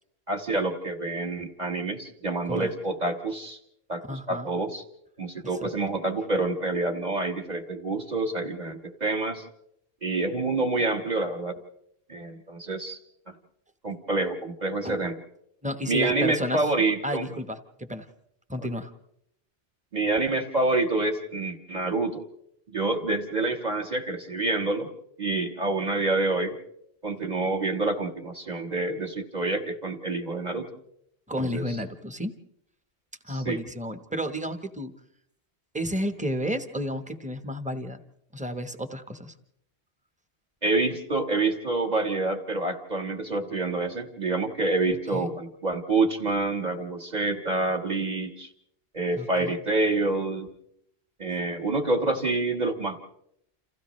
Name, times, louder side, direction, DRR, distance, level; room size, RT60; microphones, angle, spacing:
voice 1, 0.3-3.6 3.9-4.8 5.2-9.4 10.0-11.6 12.1-13.0 13.3-13.4 13.8-15.1 15.9-17.3 19.9-22.2 22.7-24.9 25.2-26.6 27.0-30.7 31.5-31.8 33.3-33.6 40.6-48.5 48.9-50.5 51.2-53.0, right 2 dB, 40° right, 4 dB, 1.5 m, -27 dB
voice 2, 4.1-4.5 5.6-5.7 14.8-15.1 15.6-16.6 17.0-18.1 18.5-18.9 31.3-32.3 33.2-35.0 35.7-38.0 38.3-39.3 45.1-45.3 49.2-49.5, equal, 5° right, 8 dB, 1.0 m, -32 dB
29.5 x 28.0 x 3.2 m, 0.76 s
omnidirectional pair, 1.2 m